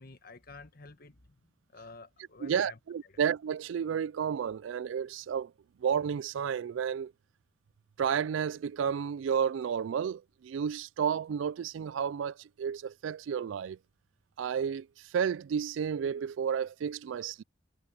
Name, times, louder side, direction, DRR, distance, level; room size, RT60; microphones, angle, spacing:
voice 1, 0.0-3.2, left 4 dB, 50° left, 1.5 m, -51 dB
voice 2, 2.4-5.5 5.8-7.1 8.0-13.8 14.4-17.4, right 7 dB, 70° right, 0.3 m, -32 dB
head